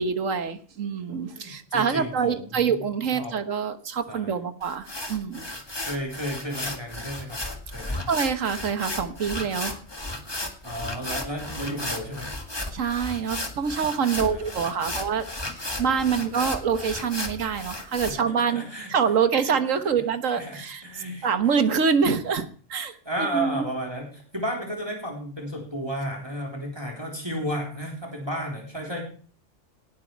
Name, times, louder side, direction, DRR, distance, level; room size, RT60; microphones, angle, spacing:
voice 1, 0.0-5.4 8.1-9.8 12.7-15.3 15.5-18.6 18.9-20.8 21.2-23.6, right 6 dB, 85° right, 10 dB, 1.7 m, -25 dB
voice 2, 1.3-2.7 3.1-3.3 4.1-4.4 5.8-7.4 7.7-8.0 10.6-12.3 14.0-14.9 15.7-16.2 17.9-18.2 18.5-18.9 19.4-19.5 20.3-21.3 23.1-29.0, right 1 dB, 20° right, 0 dB, 3.7 m, -33 dB
sound 1, 4.6-18.1, left 1 dB, 20° left, 1.8 m, -34 dB
18.0 x 11.5 x 4.6 m, 0.43 s
omnidirectional pair, 1.3 m